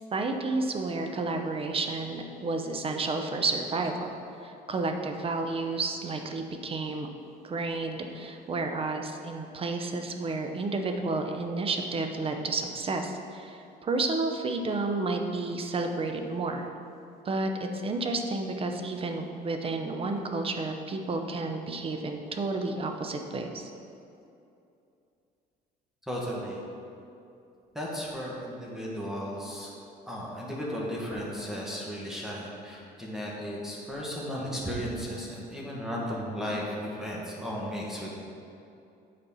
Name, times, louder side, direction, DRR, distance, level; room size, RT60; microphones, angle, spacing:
voice 1, 0.1-4.2 4.4-7.1 7.4-16.7 17.2-23.7, right 3 dB, 35° right, 5 dB, 0.7 m, -31 dB
voice 2, 26.1-26.6 27.7-29.7 30.1-38.2, equal, ahead, -5 dB, 1.5 m, -35 dB
8.1 x 4.3 x 5.6 m, 2.7 s
cardioid pair, 110°, 17 cm